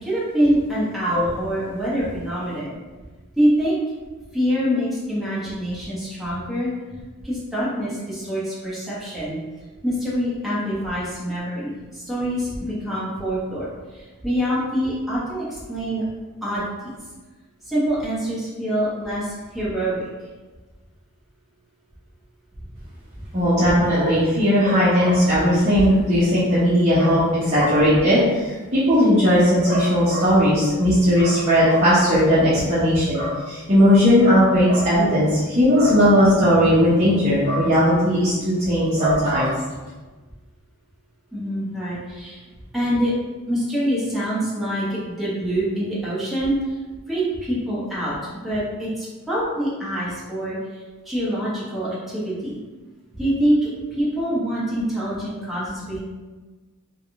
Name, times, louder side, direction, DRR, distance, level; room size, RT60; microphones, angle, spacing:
voice 1, 0.0-2.7 3.4-3.8 4.3-6.7 7.2-9.4 9.8-13.7 13.9-16.0 16.4-16.9 17.7-20.0 41.3-42.4 42.7-43.1 43.5-46.6 47.1-48.2 48.4-50.6 51.0-52.6 53.1-53.6 53.9-56.0, equal, ahead, -9 dB, 1.0 m, -25 dB
voice 2, 23.3-39.5, equal, 30° right, -11 dB, 0.8 m, -17 dB
3.5 x 2.3 x 3.5 m, 1.3 s
head